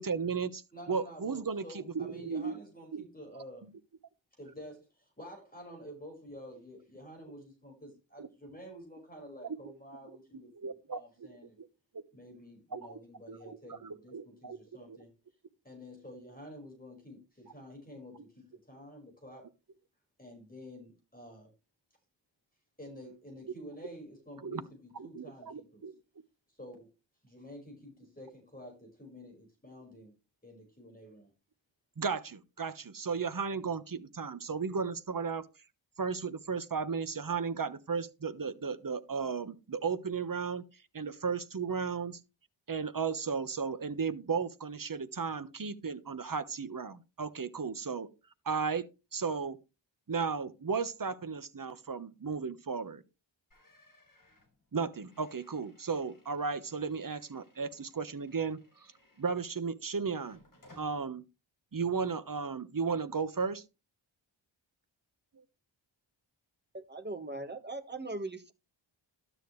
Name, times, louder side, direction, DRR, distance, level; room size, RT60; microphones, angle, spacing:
voice 1, 0.0-0.6 0.9-2.6 2.9-3.1 8.2-8.3 10.6-11.3 11.6-11.7 11.9-12.0 12.7-13.0 13.3-14.6 14.9-15.0 24.4-24.6 24.9-25.9 32.0-35.4 36.0-40.6 40.9-42.2 42.7-48.1 48.4-49.6 50.1-53.0 54.7-58.9 59.2-60.4 60.8-61.2 61.7-63.6, right 5 dB, 45° right, 1.2 m, -35 dB
voice 2, 0.7-3.7 4.4-11.6 12.1-15.1 15.6-19.5 20.2-21.5 22.8-25.8 26.5-26.9 27.2-30.1 30.4-31.3, equal, 20° left, 5.5 m, -50 dB
sound 1, 53.5-59.7 60.2-61.0, left 2 dB, 45° left, 7.0 m, -63 dB
voice 3, 66.7-68.5, right 2 dB, 20° right, 1.5 m, -39 dB
12.5 x 9.2 x 3.2 m
wide cardioid pair, 90°, 47 cm